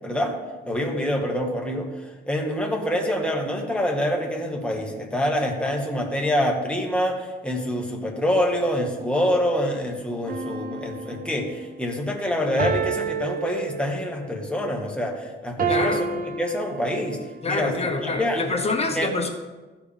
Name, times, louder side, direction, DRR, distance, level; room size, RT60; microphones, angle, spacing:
voice 1, 0.0-0.4 0.6-17.2 17.5-17.7 18.0-18.5 18.9-19.1, equal, 5° left, 0 dB, 1.7 m, -26 dB
sound 1, 10.3-11.6 12.6-14.3 15.6-17.3 17.9-18.1, right 5 dB, 45° right, 0.9 m, -29 dB
voice 2, 15.7-16.1 17.4-19.3, left 3 dB, 30° left, 4 dB, 1.2 m, -26 dB
14.0 x 4.9 x 3.5 m, 1.2 s
cardioid pair, 90°, 20 cm